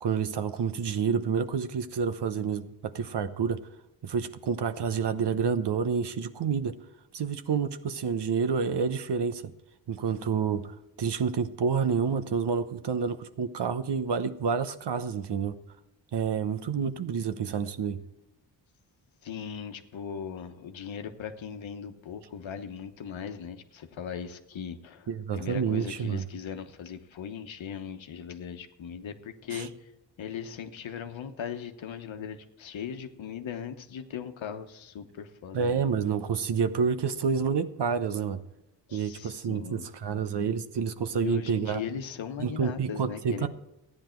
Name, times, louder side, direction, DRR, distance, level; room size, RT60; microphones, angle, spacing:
voice 1, 0.0-3.6 4.0-6.7 7.1-9.5 9.9-15.6 16.1-18.0 25.1-26.3 29.5-29.7 35.5-38.4 38.9-41.8 42.4-43.5, right 6 dB, 65° right, 11 dB, 0.9 m, -29 dB
voice 2, 19.2-29.7 30.2-35.8 38.9-39.9 41.1-43.5, left 7 dB, 90° left, 7 dB, 1.2 m, -39 dB
14.5 x 9.9 x 4.5 m, 0.94 s
wide cardioid pair, 105°, 45 cm